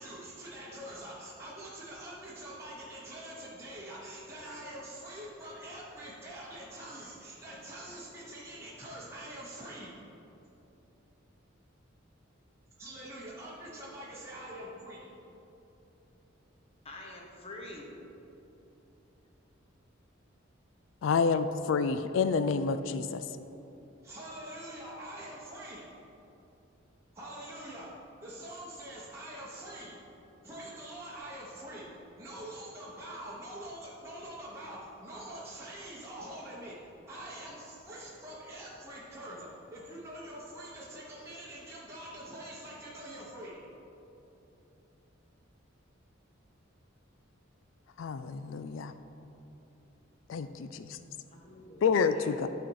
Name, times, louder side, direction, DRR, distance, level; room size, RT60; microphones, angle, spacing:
voice 1, 0.0-10.0 12.8-15.1 24.0-25.9 27.1-27.9 28.2-29.9 30.4-31.9 32.2-36.8 37.1-43.6, right 1 dB, 15° right, -7 dB, 1.0 m, -44 dB
voice 2, 16.8-17.9 51.3-52.4, left 1 dB, 30° left, -1 dB, 1.0 m, -46 dB
voice 3, 21.0-23.3 48.0-48.9 50.3-51.0 51.8-52.5, left 5 dB, 65° left, 11 dB, 0.3 m, -29 dB
11.5 x 4.2 x 4.6 m, 2.9 s
head